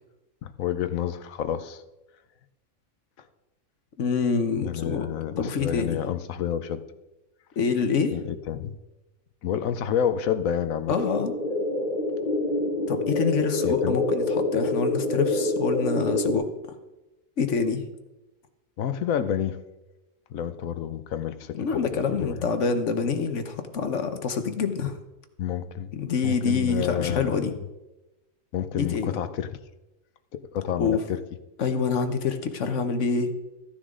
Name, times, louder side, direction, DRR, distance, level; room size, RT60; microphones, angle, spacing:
voice 1, 0.4-1.8 4.6-6.8 8.1-8.8 9.4-11.0 13.6-14.0 18.8-19.6 20.3-22.4 25.4-25.9 26.2-27.4 28.5-29.6 30.3-31.2, left 9 dB, 85° left, 11 dB, 1.2 m, -29 dB
voice 2, 4.0-5.1 5.4-6.1 7.6-8.1 10.9-11.3 12.9-16.5 17.4-17.8 21.5-25.0 25.9-27.5 28.8-29.1 30.8-31.0 31.6-33.3, left 5 dB, 65° left, 8 dB, 1.3 m, -26 dB
sound 1, 10.9-16.3, left 2 dB, 35° left, 1.1 m, -26 dB
14.0 x 10.0 x 3.8 m, 1.0 s
omnidirectional pair, 1.4 m